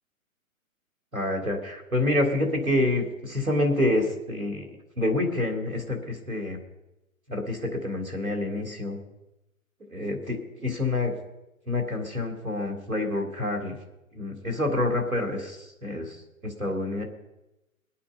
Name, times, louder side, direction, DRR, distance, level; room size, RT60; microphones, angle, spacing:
voice 1, 1.1-4.7 5.0-6.6 7.3-9.0 9.9-11.1 11.7-13.7 14.1-16.1 16.4-17.0, left 2 dB, 85° right, 2 dB, 3.5 m, -27 dB
22.5 x 8.6 x 5.5 m, 0.94 s
figure-of-eight pair, 125°, 42 cm